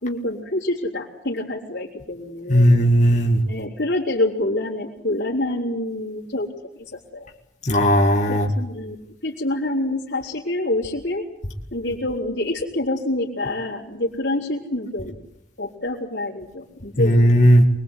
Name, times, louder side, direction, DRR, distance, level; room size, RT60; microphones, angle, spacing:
voice 1, 0.0-2.7 3.5-6.5 6.9-7.3 8.3-8.9 9.2-11.2 11.7-15.2 15.6-17.3, left 1 dB, 65° left, -5 dB, 3.9 m, -26 dB
voice 2, 2.5-3.4 7.7-8.5 17.0-17.6, equal, 40° left, 1 dB, 2.1 m, -15 dB
25.5 x 22.5 x 8.2 m, 0.78 s
head